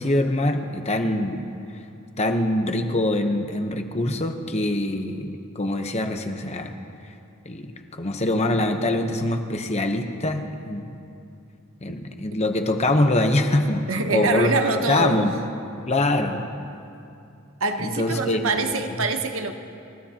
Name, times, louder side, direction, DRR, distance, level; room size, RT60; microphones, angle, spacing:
voice 1, 0.0-1.4 2.2-6.8 7.5-10.9 11.8-14.5 14.9-15.4 15.9-16.4 17.8-18.7, left 1 dB, 30° left, 5 dB, 0.9 m, -24 dB
voice 2, 13.9-15.3 17.6-19.5, right 3 dB, 65° right, 6 dB, 1.0 m, -25 dB
29.5 x 15.0 x 2.9 m, 2.7 s
head